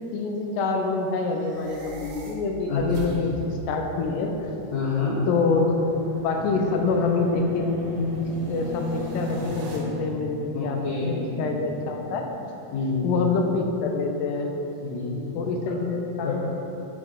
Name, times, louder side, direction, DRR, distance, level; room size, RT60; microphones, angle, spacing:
voice 1, 0.1-4.3 5.3-5.8 6.2-10.8 11.0-12.3 13.0-14.5 15.4-16.5, left 4 dB, 85° left, 3 dB, 2.2 m, -26 dB
sound 1, 1.3-9.8, right 2 dB, 85° right, 2.5 m, -40 dB
voice 2, 2.7-3.1 4.7-5.2 10.5-11.3 12.7-13.2 14.8-15.4 16.2-16.5, left 4 dB, 70° left, -10 dB, 2.3 m, -28 dB
sound 2, 6.3-12.3, left 1 dB, 45° left, 1.8 m, -39 dB
10.0 x 3.4 x 3.7 m, 2.9 s
omnidirectional pair, 3.6 m